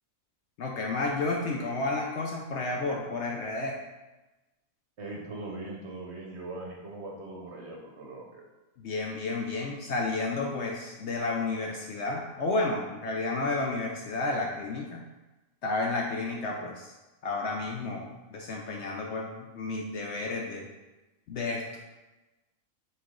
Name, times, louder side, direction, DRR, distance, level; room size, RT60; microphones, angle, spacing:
voice 1, 0.6-3.8 8.8-15.0 15.6-16.9 17.2-20.7 21.3-21.8, left 3 dB, 65° left, 0 dB, 0.7 m, -31 dB
voice 2, 5.0-8.4, right 2 dB, 55° right, -1 dB, 0.9 m, -40 dB
4.2 x 3.2 x 3.7 m, 1.1 s
omnidirectional pair, 1.5 m